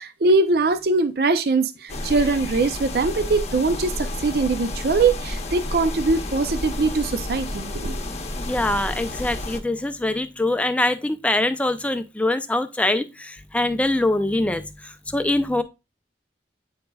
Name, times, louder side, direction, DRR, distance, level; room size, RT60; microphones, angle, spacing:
voice 1, 0.0-8.0, right 3 dB, 60° right, 0.5 m, -22 dB
sound 1, 1.9-9.6, left 1 dB, 35° left, 0.8 m, -31 dB
voice 2, 8.4-15.6, left 2 dB, 10° left, 0.4 m, -23 dB
7.9 x 5.2 x 2.3 m
head